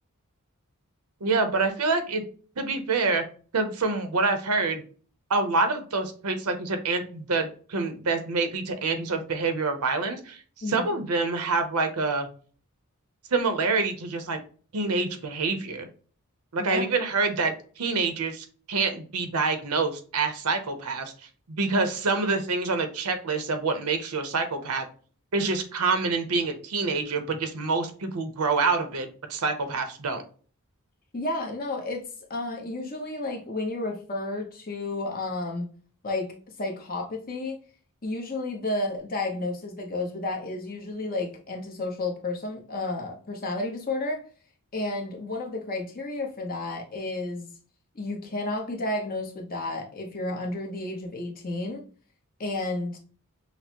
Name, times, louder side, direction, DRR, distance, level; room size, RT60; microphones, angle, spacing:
voice 1, 1.2-2.2 2.6-3.2 3.5-4.8 5.3-10.4 10.7-12.3 13.3-14.4 14.7-15.9 16.5-21.1 21.5-24.8 25.3-30.2, right 3 dB, 80° right, 7 dB, 0.7 m, -26 dB
voice 2, 31.1-32.0 32.3-35.7 36.0-36.3 36.6-37.6 38.0-44.2 44.7-47.5 47.9-51.8 52.4-53.0, left 2 dB, 40° left, 1 dB, 0.9 m, -31 dB
5.8 x 2.0 x 2.9 m, 0.41 s
head